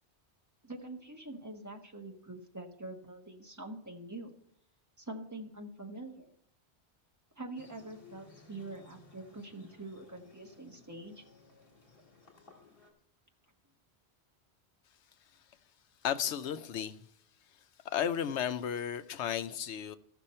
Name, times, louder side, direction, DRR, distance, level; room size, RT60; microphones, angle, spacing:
voice 1, 0.6-4.3 5.0-6.3 7.4-11.2, right 2 dB, 15° right, 1.4 m, -45 dB
sound 1, 7.6-12.9, left 3 dB, 55° left, 2.4 m, -59 dB
voice 2, 16.0-17.0 17.9-20.0, left 9 dB, 85° left, 1.0 m, -33 dB
15.0 x 6.1 x 4.3 m
omnidirectional pair, 1.1 m